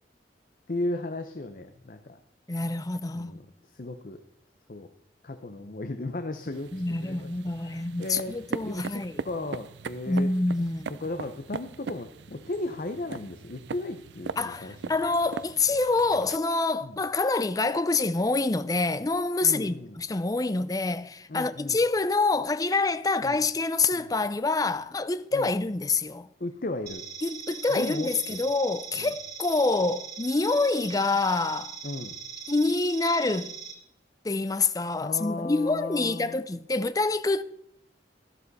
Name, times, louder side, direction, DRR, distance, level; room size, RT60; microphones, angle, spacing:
voice 1, 0.7-2.2 3.1-4.2 4.7-4.9 5.2-7.3 7.6-8.4 8.6-10.3 11.0-14.9 16.8-17.0 19.4-20.0 21.3-21.8 23.2-23.4 23.9-24.1 25.3-25.5 26.4-27.1 27.7-28.4 29.0-29.1 31.8-32.2 35.0-36.4, left 2 dB, 50° left, 0.8 m, -35 dB
voice 2, 2.5-3.4 6.7-9.2 10.1-11.0 14.4-26.3 27.2-31.8 32.5-33.6 34.2-37.4, left 3 dB, 20° left, 0.5 m, -26 dB
sound 1, 6.5-16.4, right 5 dB, 75° right, 0.5 m, -40 dB
sound 2, 26.9-33.7, right 7 dB, 60° right, 3.3 m, -41 dB
12.5 x 12.5 x 4.1 m
head